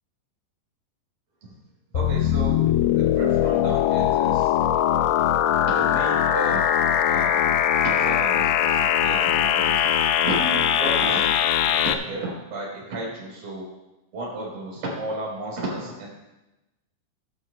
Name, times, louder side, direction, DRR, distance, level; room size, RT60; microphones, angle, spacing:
sound 1, 1.9-11.9, left 10 dB, 80° left, 2.4 m, -21 dB
voice 1, 1.9-2.6 3.0-4.5 5.6-6.6 7.1-7.5 7.8-9.9 10.2-11.3 11.7-13.7 14.1-16.1, right 1 dB, 40° right, -4 dB, 4.8 m, -33 dB
15.5 x 12.5 x 2.2 m, 0.99 s
omnidirectional pair, 5.2 m